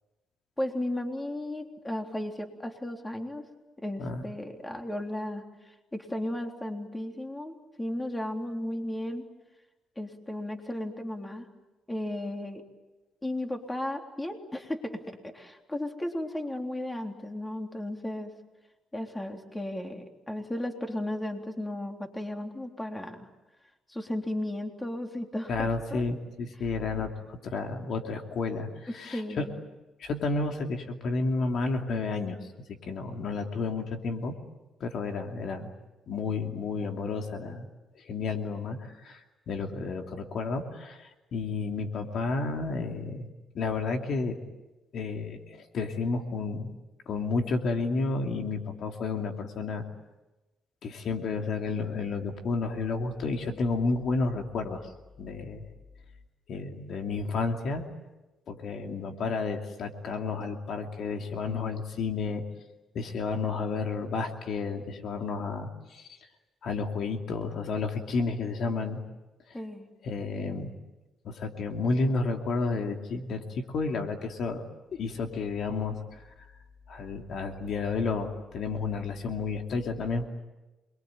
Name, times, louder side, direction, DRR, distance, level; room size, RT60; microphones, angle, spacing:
voice 1, 0.6-3.5 3.8-9.3 10.0-11.5 11.9-12.6 13.2-18.3 18.9-23.3 23.9-26.1 28.9-29.6 69.5-69.9, left 1 dB, 15° left, 3 dB, 3.6 m, -35 dB
voice 2, 25.5-28.7 28.9-29.5 30.0-32.4 32.8-34.3 34.8-35.7 36.1-37.7 37.9-43.3 43.5-44.4 44.9-46.7 47.1-49.8 50.8-54.9 55.2-55.6 56.5-57.8 58.5-62.4 62.9-66.1 66.6-69.0 70.0-70.7 71.2-74.6 75.0-76.2 76.9-80.3, left 3 dB, 65° left, 4 dB, 2.8 m, -31 dB
27.5 x 22.5 x 9.2 m, 1.1 s
cardioid pair, 90°, 0 cm